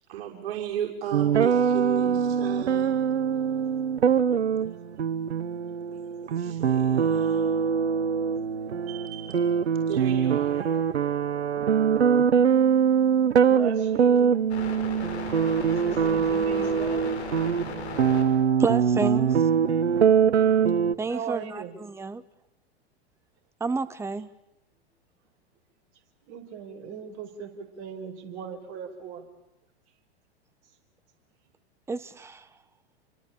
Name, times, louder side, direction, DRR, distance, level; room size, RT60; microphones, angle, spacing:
voice 1, 0.1-2.9 6.3-7.4 8.9-9.4 9.9-10.8, right 9 dB, 60° right, 6.1 m, -35 dB
sound 1, 1.1-20.9, right 7 dB, 80° right, 1.3 m, -23 dB
voice 2, 13.3-14.6 15.8-17.1 21.1-21.8 26.3-29.2, right 7 dB, 45° right, 5.1 m, -38 dB
sound 2, 14.5-18.2 18.5-20.0, left 5 dB, 75° left, 6.1 m, -37 dB
voice 3, 18.6-19.4 21.0-22.2 23.6-24.3 31.9-32.5, right 4 dB, 10° right, 1.0 m, -30 dB
28.0 x 24.0 x 8.8 m
hypercardioid pair, 105°, 33 cm